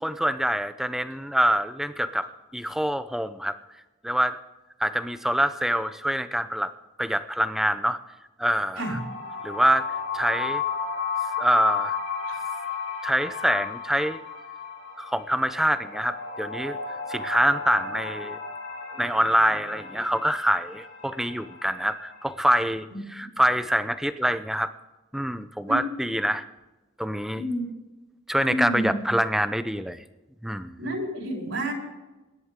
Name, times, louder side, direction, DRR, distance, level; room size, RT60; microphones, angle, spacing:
voice 1, 0.0-2.3 2.5-3.6 4.0-4.4 4.8-6.7 7.0-8.0 8.4-9.0 9.4-10.6 11.4-12.0 13.0-14.2 15.0-16.8 17.1-18.4 19.0-24.7 25.1-26.4 27.0-27.4 28.3-30.0 30.4-30.7, equal, ahead, 11 dB, 0.6 m, -25 dB
sound 1, 8.8-22.5, left 5 dB, 65° left, 6.3 m, -34 dB
voice 2, 27.3-27.6 28.5-28.9 30.8-31.7, right 1 dB, 70° right, 0 dB, 4.2 m, -29 dB
20.5 x 11.0 x 3.7 m, 1.1 s
head